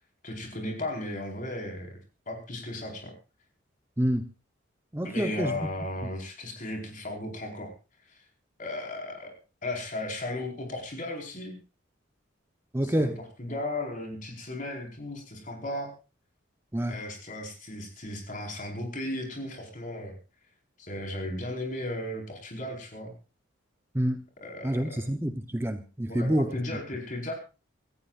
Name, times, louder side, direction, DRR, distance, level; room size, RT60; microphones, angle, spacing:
voice 1, 0.2-2.0 2.3-3.1 5.0-7.7 8.1-8.2 8.6-9.3 9.6-11.6 12.8-13.1 13.4-15.9 16.9-20.1 20.8-23.1 24.4-25.0 26.1-27.3, left 1 dB, 40° left, 4.9 m, -35 dB
voice 2, 4.9-5.6 12.7-13.2 16.7-17.0 23.9-24.2 24.6-26.5, equal, 10° right, 0.8 m, -27 dB
26.5 x 14.5 x 2.5 m
head